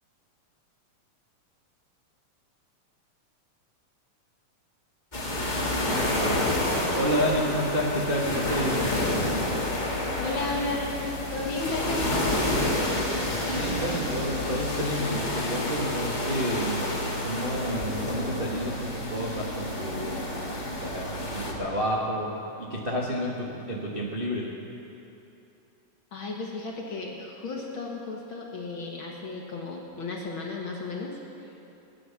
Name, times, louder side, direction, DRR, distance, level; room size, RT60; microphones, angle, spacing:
sound 1, 5.1-21.5, left 1 dB, 20° left, 1.2 m, -29 dB
voice 1, 6.9-8.9 13.2-16.8 17.2-22.3 22.6-24.5, equal, 45° right, -4 dB, 0.7 m, -30 dB
voice 2, 10.2-10.9 11.3-12.5 26.1-31.5, left 3 dB, 50° left, -1 dB, 1.8 m, -34 dB
19.5 x 9.8 x 7.2 m, 2.8 s
omnidirectional pair, 3.7 m